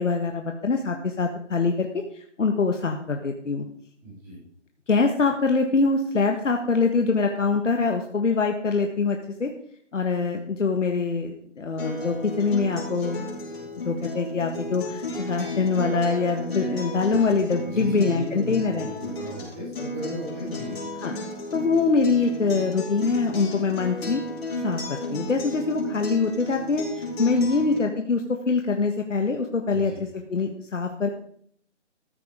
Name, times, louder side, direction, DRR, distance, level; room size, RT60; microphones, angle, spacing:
voice 1, 0.0-3.6 4.9-9.5 9.9-13.2 13.8-18.9 21.0-21.1 21.5-24.2 24.6-31.1, left 4 dB, 85° left, 4 dB, 1.6 m, -24 dB
voice 2, 4.0-4.4 17.1-17.3 17.7-20.7 27.4-27.5 29.7-30.0, equal, 5° right, -8 dB, 3.8 m, -35 dB
Acoustic guitar, 11.8-27.8, left 1 dB, 55° left, 5.8 m, -34 dB
14.0 x 7.5 x 5.1 m, 0.63 s
hypercardioid pair, 175°, 36 cm